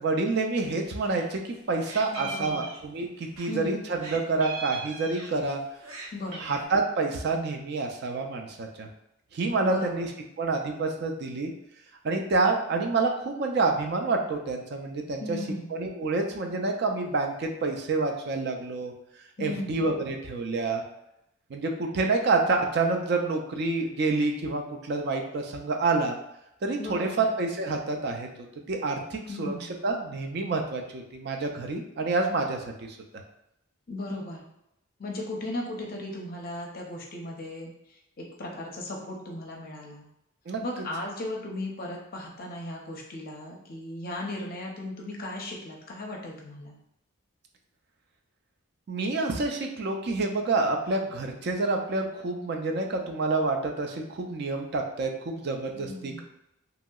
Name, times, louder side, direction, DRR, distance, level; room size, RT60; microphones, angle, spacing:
voice 1, 0.0-5.6 6.4-8.9 9.3-10.1 10.4-11.5 12.0-15.4 15.7-18.9 19.4-20.8 21.5-26.2 26.6-28.3 28.7-29.5 29.8-33.0 40.5-40.6 48.9-56.2, right 3 dB, 50° right, 3 dB, 0.3 m, -28 dB
Meow, 0.7-1.3 1.5-3.5 4.0-5.5 5.8-6.6, right 3 dB, 80° right, 0.7 m, -40 dB
voice 2, 2.1-2.7 3.5-3.8 6.1-6.6 9.6-10.1 15.2-15.7 19.4-19.8 26.8-27.2 29.3-29.7 33.9-34.4 35.0-37.7 38.2-40.1 40.6-46.8 55.7-56.2, left 1 dB, 45° left, 0 dB, 0.5 m, -36 dB
2.9 x 2.7 x 2.3 m, 0.83 s
head